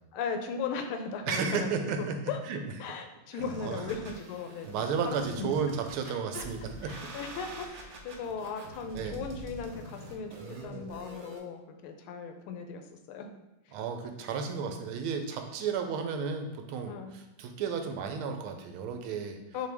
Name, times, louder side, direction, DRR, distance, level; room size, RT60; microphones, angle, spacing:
voice 1, 0.1-1.7 2.0-2.4 2.8-4.7 5.0-5.5 6.3-10.3 10.6-13.3 15.6-15.7 16.9-17.1 19.5-19.7, left 5 dB, 85° left, 6 dB, 1.5 m, -37 dB
voice 2, 1.3-2.2 2.5-2.6 3.3-3.8 4.7-7.0 8.9-9.2 10.4-10.8 13.7-19.4, right 6 dB, 85° right, 5 dB, 1.5 m, -33 dB
sound 1, 3.4-11.4, equal, 60° right, 0.9 m, -45 dB
5.9 x 2.7 x 3.4 m, 1.0 s
omnidirectional pair, 2.3 m